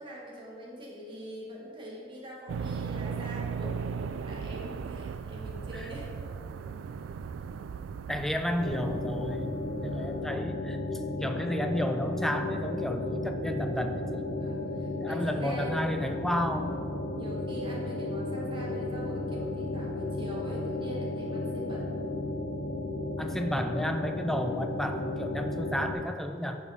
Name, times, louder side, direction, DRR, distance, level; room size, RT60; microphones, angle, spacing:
voice 1, 0.0-6.4 9.8-10.2 14.4-15.8 17.1-21.9, equal, 25° right, -4 dB, 1.7 m, -43 dB
sound 1, 2.5-10.3, right 6 dB, 90° right, 0.3 m, -37 dB
voice 2, 8.1-10.8 11.2-14.3 15.0-16.8 23.2-26.6, equal, ahead, 6 dB, 0.4 m, -32 dB
sound 2, 8.6-25.9, left 2 dB, 90° left, 0.9 m, -34 dB
9.7 x 5.3 x 4.2 m, 2.4 s
head